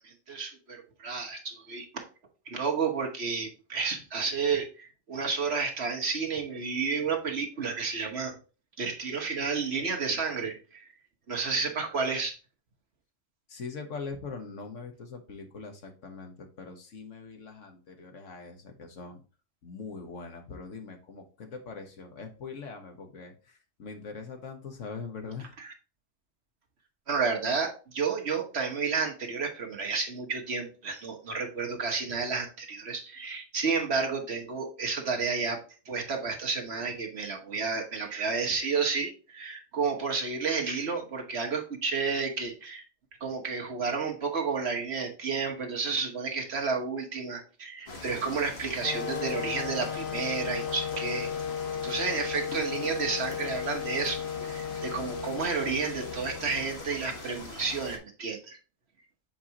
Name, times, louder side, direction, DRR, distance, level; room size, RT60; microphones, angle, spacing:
voice 1, 0.0-2.0 2.5-8.3 8.8-10.9 11.3-12.4 25.6-25.7 27.1-35.6 35.9-42.8 43.2-51.3 51.8-58.6, right 5 dB, 55° right, 2 dB, 1.4 m, -31 dB
voice 2, 13.5-19.2 19.6-25.5, left 4 dB, 70° left, 4 dB, 1.5 m, -42 dB
sound 1, 47.9-58.0, left 2 dB, 55° left, 1.6 m, -42 dB
sound 2, 48.8-56.8, left 8 dB, 85° left, 1.1 m, -35 dB
7.4 x 4.6 x 2.9 m, 0.35 s
omnidirectional pair, 1.3 m